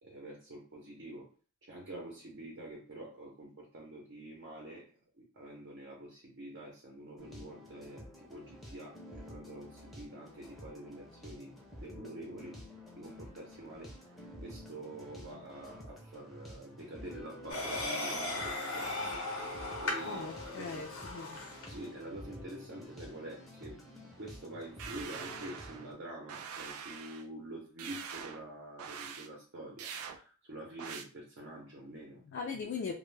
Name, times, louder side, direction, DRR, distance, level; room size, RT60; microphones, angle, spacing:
voice 1, 0.0-1.3 1.6-12.6 13.0-13.9 14.4-20.9 21.7-32.2, right 1 dB, 60° right, -1 dB, 0.7 m, -47 dB
sound 1, 7.2-25.9, equal, ahead, 0.5 m, -50 dB
sound 2, 17.5-21.8, left 2 dB, 90° left, 0.8 m, -37 dB
voice 2, 20.0-21.4 32.3-32.9, left 5 dB, 55° left, 1 dB, 0.3 m, -40 dB
sound 3, 24.8-25.9 26.3-27.2 27.8-28.4 28.8-29.3 29.8-30.2 30.8-31.0, right 7 dB, 90° right, 0.3 m, -44 dB
2.1 x 2.1 x 3.1 m, 0.38 s
head